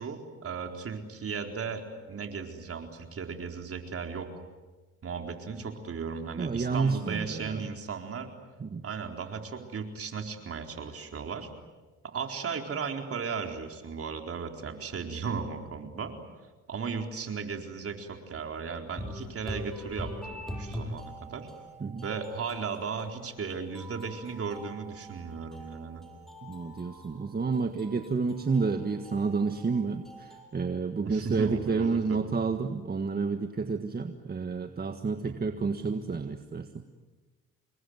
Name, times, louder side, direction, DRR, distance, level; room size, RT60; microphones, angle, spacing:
voice 1, 0.0-4.3 5.0-8.3 8.8-11.5 12.0-16.1 16.7-21.5 22.0-26.1 31.0-32.3 35.2-35.3, right 5 dB, 50° right, 4 dB, 4.2 m, -36 dB
voice 2, 6.4-7.6 8.6-8.8 21.8-22.1 26.4-36.8, right 4 dB, 30° right, 7 dB, 1.6 m, -30 dB
sound 1, 19.0-30.4, equal, ahead, 7.2 m, -43 dB
27.5 x 21.5 x 9.6 m, 1.3 s
cardioid pair, 90°, 30 cm